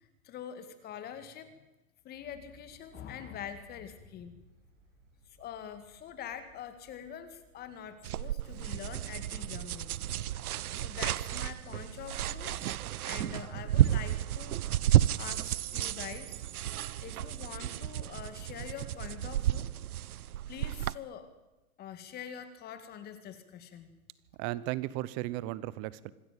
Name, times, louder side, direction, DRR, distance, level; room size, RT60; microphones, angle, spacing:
voice 1, 0.0-1.5 2.0-4.4 5.4-9.9 10.8-12.5 13.0-14.6 15.2-16.4 17.0-19.7 20.5-21.3 21.8-23.9, left 8 dB, 20° left, 10 dB, 2.0 m, -44 dB
sound 1, 2.3-17.3, right 4 dB, 55° right, 7.8 m, -58 dB
sound 2, 8.0-21.0, right 12 dB, 75° right, 0.8 m, -32 dB
voice 2, 24.4-26.1, right 17 dB, 25° right, 19 dB, 0.8 m, -35 dB
25.5 x 13.0 x 9.0 m, 1.1 s
hypercardioid pair, 145°, 44 cm